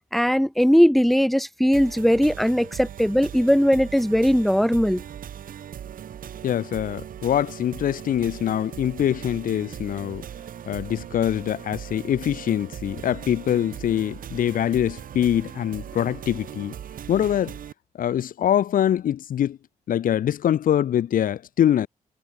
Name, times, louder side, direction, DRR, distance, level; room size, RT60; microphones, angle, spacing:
voice 1, 0.1-5.0, equal, ahead, 2.8 m, -19 dB
sound 1, 1.7-17.7, right 9 dB, 70° right, 4.9 m, -39 dB
voice 2, 6.4-10.2 10.7-16.7 17.1-17.6 18.0-19.6 19.9-21.9, left 10 dB, 75° left, 1.6 m, -24 dB
cardioid pair, 85°, 15 cm